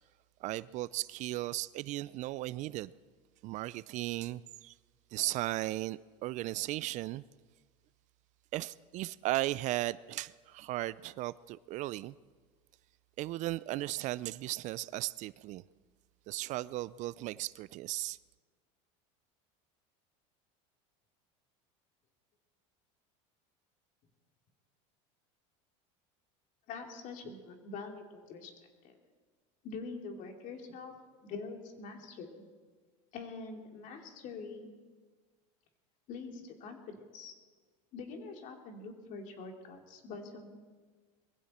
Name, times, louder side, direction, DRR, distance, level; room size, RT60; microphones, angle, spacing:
voice 1, 0.4-2.9 3.4-4.7 5.1-7.2 8.5-12.2 13.2-15.6 16.3-18.2, right 17 dB, 45° right, 0.4 m, -36 dB
voice 2, 26.7-28.5 28.8-29.0 29.6-30.9 31.2-32.4 33.1-34.7 36.1-37.3 37.9-40.5, left 4 dB, 50° left, 2.6 m, -44 dB
21.5 x 15.5 x 4.3 m
supercardioid pair, 120°, 17 cm